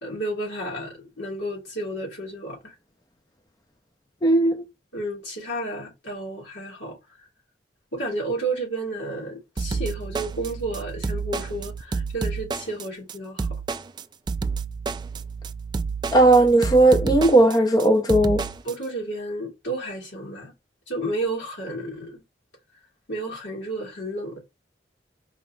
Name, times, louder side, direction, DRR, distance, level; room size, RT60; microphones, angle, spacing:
voice 1, 0.0-2.7 4.9-7.0 7.9-13.5 18.6-20.5 20.9-22.2 23.1-24.4, right 2 dB, 80° left, 2.9 m, -31 dB
voice 2, 4.2-4.6 16.1-18.5, right 2 dB, 20° left, 0.5 m, -16 dB
sound 1, 9.6-18.7, right 4 dB, 25° right, 0.3 m, -30 dB
4.9 x 2.9 x 3.3 m
head